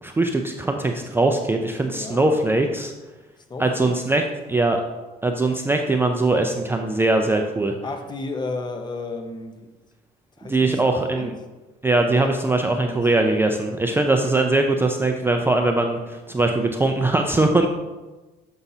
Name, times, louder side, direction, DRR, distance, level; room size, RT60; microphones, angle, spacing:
voice 1, 0.0-2.9 3.6-4.2 4.5-4.8 5.2-7.8 10.4-11.3 11.8-17.7, right 2 dB, 15° right, 4 dB, 0.4 m, -21 dB
voice 2, 1.9-2.2 3.5-3.9 7.8-9.7 10.4-11.3 12.4-13.0, left 3 dB, 25° left, 5 dB, 0.7 m, -33 dB
7.0 x 5.4 x 2.7 m, 1.2 s
cardioid pair, 110°, 17 cm